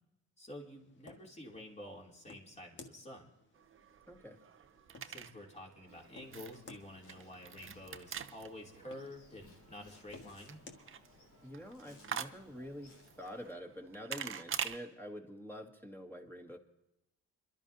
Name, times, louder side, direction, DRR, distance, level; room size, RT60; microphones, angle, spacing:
voice 1, 0.4-3.3 5.0-10.6, left 1 dB, 20° left, -2 dB, 3.3 m, -50 dB
sound 1, 0.6-10.9, left 3 dB, 40° left, 1.7 m, -59 dB
sound 2, 3.5-14.8, right 8 dB, 45° right, 0.8 m, -46 dB
voice 2, 4.1-4.4 11.4-16.6, equal, 5° left, 1 dB, 2.2 m, -47 dB
Insect, 5.9-13.5, left 2 dB, 85° left, 3.9 m, -62 dB
27.5 x 12.0 x 2.8 m, 0.85 s
cardioid pair, 90°, 30 cm